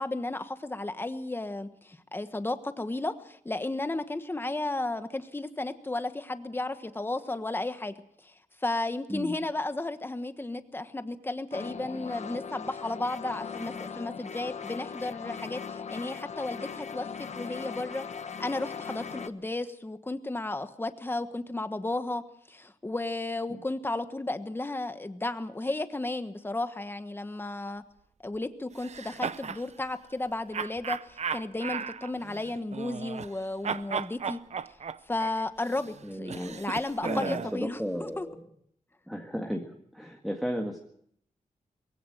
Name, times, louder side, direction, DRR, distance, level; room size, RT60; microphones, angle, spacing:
voice 1, 0.0-7.9 8.2-8.3 8.6-18.1 18.4-22.2 22.5-27.8 28.2-34.4 35.1-38.3, left 2 dB, 15° left, 10 dB, 1.3 m, -33 dB
sound 1, 11.5-19.3, left 6 dB, 55° left, 1.1 m, -39 dB
sound 2, 28.8-29.6 30.5-33.4 33.6-37.6, right 6 dB, 55° right, 0.7 m, -36 dB
voice 2, 36.0-36.6 37.0-38.4 39.1-39.6 39.9-40.8, equal, ahead, 2 dB, 1.8 m, -34 dB
22.0 x 16.5 x 7.9 m, 0.69 s
wide cardioid pair, 145°, 14 cm